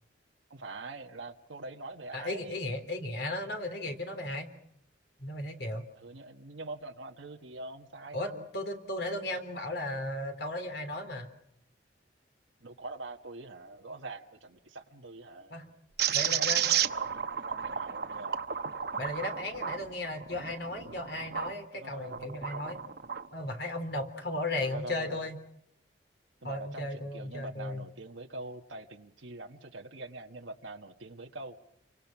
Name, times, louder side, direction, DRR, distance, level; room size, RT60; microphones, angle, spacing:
voice 1, 0.5-2.6 6.0-8.5 12.6-15.7 16.1-18.4 21.7-22.9 24.6-25.3 26.4-31.6, right 2 dB, 90° right, 2 dB, 1.4 m, -44 dB
voice 2, 2.1-4.5 5.2-5.9 8.1-11.3 15.5-15.6 16.1-16.7 19.0-22.8 23.3-25.4 26.4-27.8, left 1 dB, 60° left, 6 dB, 3.6 m, -35 dB
sound 1, 16.0-21.5 22.0-23.3, right 9 dB, 55° right, 1.0 m, -32 dB
29.0 x 24.0 x 6.0 m, 0.74 s
head